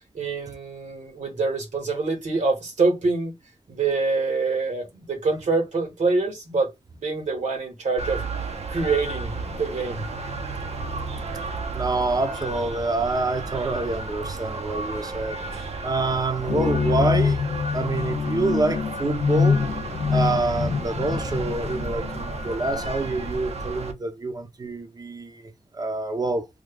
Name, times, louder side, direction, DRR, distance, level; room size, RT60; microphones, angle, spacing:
voice 1, 0.1-3.4 3.7-6.7 7.0-8.2 8.7-10.1, right 3 dB, 85° right, 1.9 m, -25 dB
sound 1, 8.0-23.9, right 3 dB, 60° right, 0.8 m, -33 dB
voice 2, 11.7-17.4 17.7-19.6 20.1-26.5, right 3 dB, 30° right, 0.7 m, -27 dB
sound 2, 16.5-23.1, left 6 dB, 50° left, 0.4 m, -25 dB
3.2 x 2.4 x 3.5 m
wide cardioid pair, 120°, 12 cm